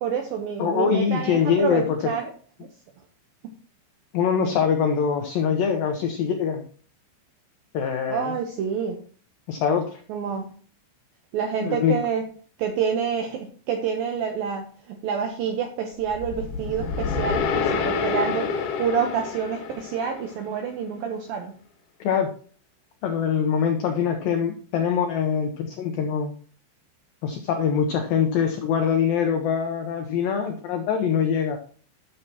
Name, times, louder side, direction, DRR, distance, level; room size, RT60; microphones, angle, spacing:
voice 1, 0.0-2.3 3.4-3.5 8.1-9.0 10.1-10.6 11.3-12.2 12.6-21.6, right 7 dB, 80° right, 4 dB, 2.1 m, -28 dB
voice 2, 0.6-2.1 4.1-6.6 7.7-8.3 9.5-10.0 11.6-12.0 22.0-22.3 23.0-26.3 27.2-31.6, left 7 dB, 85° left, 5 dB, 2.0 m, -23 dB
sound 1, 16.1-20.4, left 5 dB, 65° left, 2.2 m, -28 dB
13.0 x 7.0 x 2.9 m, 0.43 s
omnidirectional pair, 5.4 m